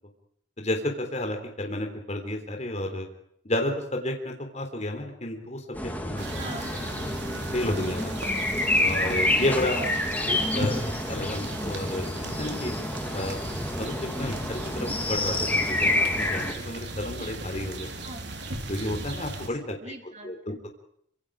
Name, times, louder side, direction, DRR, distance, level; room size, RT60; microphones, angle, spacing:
voice 1, 0.6-3.1 3.4-6.3 7.1-7.2 7.5-8.1 8.8-9.8 10.5-10.8 11.1-12.7 13.1-13.4 13.7-17.9 18.7-19.8 20.2-20.7, left 1 dB, 35° left, 3 dB, 3.7 m, -31 dB
sound 1, 5.7-16.5, left 1 dB, 10° left, 2.8 m, -28 dB
sound 2, 6.2-19.5, right 1 dB, 60° right, 3.5 m, -37 dB
voice 2, 6.3-6.7 9.7-10.4 18.0-18.2 19.8-20.6, right 2 dB, 35° right, 4 dB, 3.3 m, -40 dB
27.5 x 26.0 x 5.0 m, 0.69 s
head